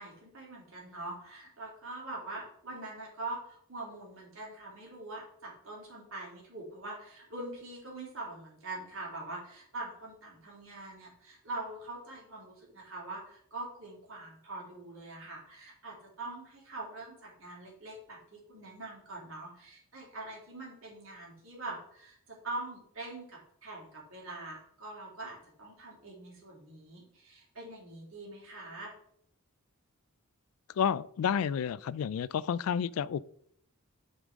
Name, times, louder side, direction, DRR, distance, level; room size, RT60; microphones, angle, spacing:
voice 1, 0.0-28.9, right 2 dB, 65° right, 3.2 m, -43 dB
voice 2, 30.7-33.2, left 8 dB, 80° left, 0.3 m, -30 dB
8.2 x 5.4 x 3.7 m
head